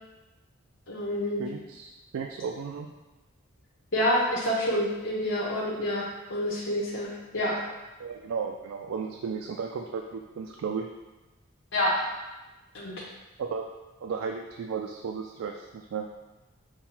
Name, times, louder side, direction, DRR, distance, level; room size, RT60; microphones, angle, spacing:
voice 1, 0.9-1.4 3.9-6.0 6.3-7.6 11.7-12.0 12.7-13.1, left 1 dB, 65° left, -6 dB, 0.9 m, -27 dB
voice 2, 1.4-2.9 8.0-10.9 13.4-13.7 14.0-16.1, right 5 dB, 80° right, 2 dB, 0.3 m, -34 dB
5.5 x 2.2 x 4.4 m, 1.1 s
head